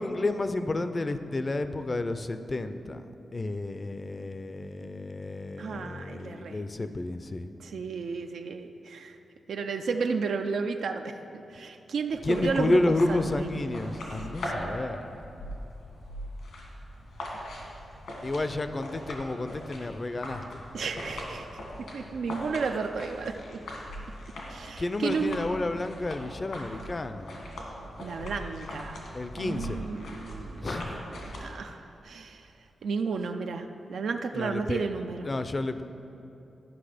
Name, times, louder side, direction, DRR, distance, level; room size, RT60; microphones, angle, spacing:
voice 1, 0.0-3.1 3.3-7.5 12.2-15.1 18.2-20.6 24.8-27.3 29.1-29.8 30.6-31.0 34.3-34.9 35.2-35.8, left 2 dB, 30° left, 10 dB, 0.4 m, -30 dB
voice 2, 5.6-6.6 7.6-9.2 9.5-13.7 20.7-21.5 21.9-23.6 24.5-25.4 28.0-29.0 29.3-32.5 32.8-35.3, right 5 dB, 80° right, 5 dB, 0.4 m, -33 dB
sound 1, 12.1-31.4, left 1 dB, 90° left, 1.9 m, -40 dB
12.0 x 5.8 x 5.0 m, 2.9 s
wide cardioid pair, 110°, 0 cm